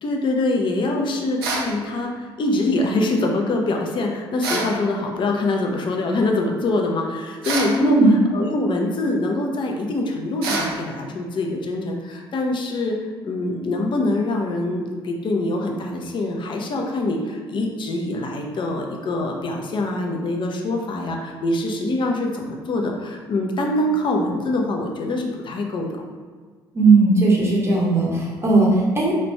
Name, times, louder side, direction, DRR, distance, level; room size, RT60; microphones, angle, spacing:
voice 1, 0.0-13.0 13.2-25.9, left 2 dB, 40° left, 1 dB, 0.6 m, -24 dB
sound 1, 1.4-1.7 4.4-4.7 7.4-7.8 10.4-10.7, right 3 dB, 75° right, 0.5 m, -25 dB
voice 2, 7.8-8.1 26.7-29.1, right 3 dB, 20° right, -4 dB, 1.0 m, -17 dB
3.1 x 2.5 x 3.1 m, 1.5 s
figure-of-eight pair, 50°, 13 cm